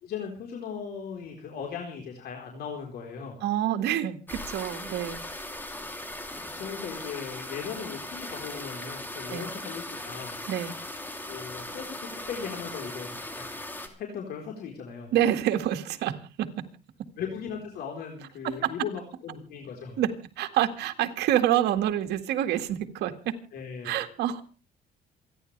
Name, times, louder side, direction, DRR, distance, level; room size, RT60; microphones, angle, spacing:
voice 1, 0.0-3.4 6.6-10.4 11.3-13.5 13.8-15.1 17.2-20.0 23.5-24.0, left 7 dB, 70° left, 1 dB, 4.3 m, -38 dB
voice 2, 3.4-5.2 9.3-9.5 10.5-10.7 15.1-16.5 18.4-18.7 20.0-23.4 23.8-24.4, right 11 dB, 80° right, 7 dB, 2.0 m, -27 dB
sound 1, 4.3-13.9, left 1 dB, 10° left, 3.0 m, -38 dB
27.5 x 11.0 x 3.3 m, 0.35 s
cardioid pair, 110°, 17 cm